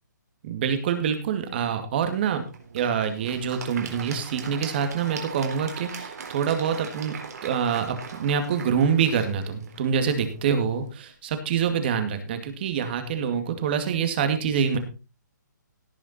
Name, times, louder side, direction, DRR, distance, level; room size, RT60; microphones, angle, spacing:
voice 1, 0.4-2.4 2.7-7.1 7.4-14.8, right 7 dB, 30° right, 8 dB, 2.2 m, -26 dB
Applause / Crowd, 2.0-11.1, right 5 dB, 55° right, 4.0 m, -41 dB
17.5 x 7.1 x 4.3 m, 0.32 s
hypercardioid pair, 170°, 10 cm